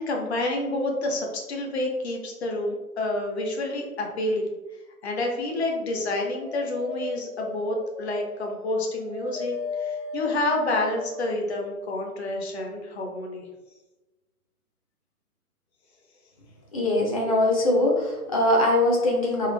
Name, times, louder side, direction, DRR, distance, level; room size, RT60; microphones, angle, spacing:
voice 1, 0.0-4.4 5.0-13.4, left 2 dB, 45° left, 1 dB, 1.0 m, -28 dB
Dog, 5.8-11.4, left 2 dB, 20° right, 0.5 m, -37 dB
voice 2, 16.7-19.5, left 1 dB, 25° left, -2 dB, 0.6 m, -22 dB
3.7 x 3.0 x 3.2 m, 1.1 s
figure-of-eight pair, 145°, 45 cm